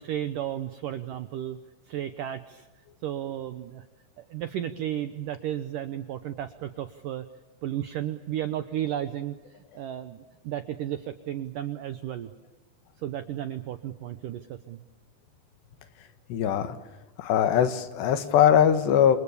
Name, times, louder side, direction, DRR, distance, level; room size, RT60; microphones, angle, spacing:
voice 1, 0.0-1.6 1.9-2.7 3.0-3.8 4.2-7.3 7.6-9.4 9.8-12.3 13.0-14.8, right 11 dB, 75° right, 9 dB, 2.0 m, -33 dB
voice 2, 16.3-16.8 17.2-19.2, left 9 dB, 75° left, 10 dB, 3.6 m, -21 dB
28.0 x 28.0 x 7.2 m, 1.2 s
omnidirectional pair, 5.1 m